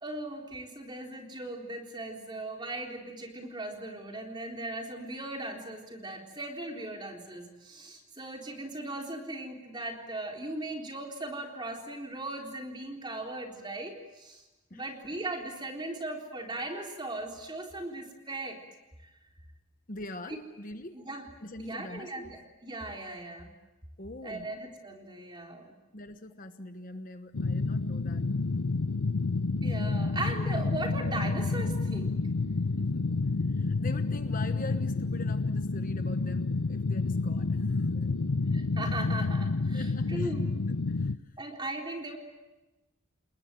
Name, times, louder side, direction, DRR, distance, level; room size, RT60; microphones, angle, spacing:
voice 1, 0.0-14.4 14.7-18.6 20.3-20.4 20.9-21.3 21.6-23.5 24.2-25.7 29.6-32.1 38.5-40.5 41.4-42.2, right 2 dB, 20° right, 2 dB, 3.8 m, -38 dB
voice 2, 14.7-15.1 19.9-21.0 21.4-22.3 24.0-24.5 25.9-28.3 32.7-38.2 39.7-40.3 40.7-41.4, left 2 dB, 40° left, 8 dB, 1.1 m, -44 dB
sound 1, 27.3-41.1, left 3 dB, 90° left, 0.8 m, -29 dB
29.5 x 20.5 x 9.1 m, 1.1 s
head